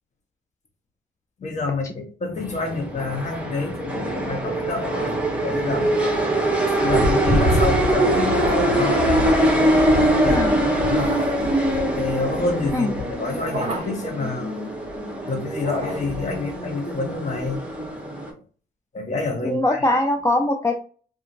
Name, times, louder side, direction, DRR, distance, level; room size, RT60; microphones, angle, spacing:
voice 1, 1.4-5.9 6.8-9.0 10.0-11.2 11.9-14.6 15.3-17.6 18.9-19.8, left 3 dB, 35° left, 2 dB, 1.0 m, -28 dB
sound 1, 2.4-18.3, right 1 dB, 5° right, 1.0 m, -22 dB
sound 2, 8.3-8.9 10.9-11.5 13.4-14.1 15.5-16.3, right 2 dB, 35° right, 1.2 m, -32 dB
voice 2, 10.3-10.6 12.7-12.9 19.4-20.8, left 1 dB, 15° left, 3 dB, 0.3 m, -22 dB
2.7 x 2.6 x 2.6 m, 0.40 s
cardioid pair, 90°, 20 cm